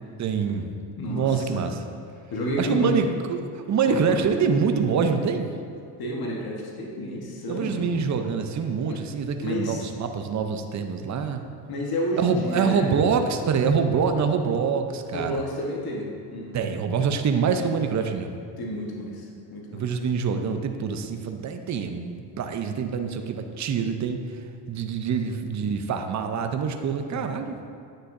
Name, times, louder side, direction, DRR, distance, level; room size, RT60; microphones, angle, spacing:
voice 1, 0.2-0.7 1.1-1.8 2.6-5.5 7.5-11.4 12.2-15.4 16.5-18.3 19.7-24.2 24.7-27.6, right 6 dB, 40° right, 6 dB, 0.7 m, -25 dB
voice 2, 1.0-1.6 2.3-3.0 3.9-4.2 6.0-7.9 8.9-9.0 9.4-9.9 11.7-12.9 15.1-16.7 18.6-19.8 25.1-25.2 27.1-27.5, left 1 dB, 55° left, -1 dB, 1.4 m, -31 dB
9.6 x 6.4 x 2.6 m, 2.5 s
supercardioid pair, 75°, 45 cm